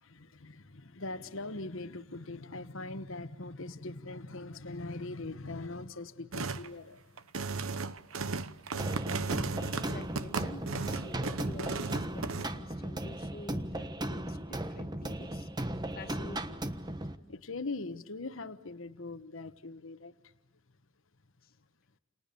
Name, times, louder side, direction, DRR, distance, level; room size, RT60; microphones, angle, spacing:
voice 1, 0.0-7.0 17.3-20.1, left 2 dB, 70° left, 10 dB, 1.3 m, -41 dB
sound 1, 6.3-6.7 7.2-12.5, right 4 dB, 90° right, 1.1 m, -35 dB
sound 2, 8.8-17.2, right 1 dB, 20° right, 1.3 m, -37 dB
voice 2, 9.7-16.7 21.4-21.6, left 2 dB, 45° left, 8 dB, 1.9 m, -48 dB
29.5 x 29.0 x 6.9 m, 0.93 s
head